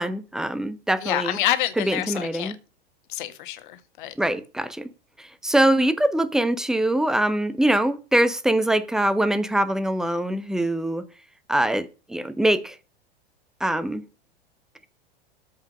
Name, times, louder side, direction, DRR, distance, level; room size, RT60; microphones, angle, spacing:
voice 1, 0.0-1.4 1.9-2.5 4.2-4.9 5.4-11.0 11.5-12.7 13.6-14.0, right 1 dB, ahead, 0.9 m, -23 dB
voice 2, 1.0-2.5 3.1-4.1, left 13 dB, 55° left, 1.7 m, -27 dB
13.5 x 5.6 x 6.1 m
figure-of-eight pair, 90°, 31 cm